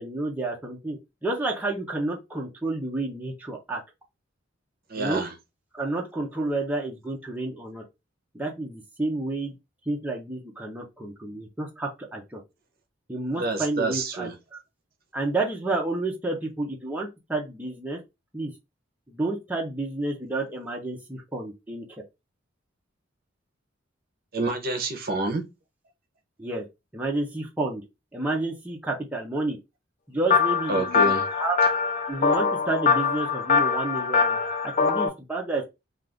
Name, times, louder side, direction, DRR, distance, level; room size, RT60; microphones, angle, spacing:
voice 1, 0.0-3.8 5.0-5.2 5.7-7.8 8.3-9.5 9.9-12.4 13.1-14.6 15.1-18.0 18.3-18.5 19.1-21.9 26.4-26.6 26.9-27.9 28.1-29.6 30.1-31.6 32.1-35.6, right 2 dB, 10° right, 0.6 m, -30 dB
voice 2, 4.9-5.3 13.3-14.3 24.3-25.4 30.7-31.3, right 2 dB, 50° right, 0.7 m, -28 dB
sound 1, 30.3-35.1, left 5 dB, 40° left, 0.4 m, -23 dB
2.4 x 2.4 x 3.4 m
head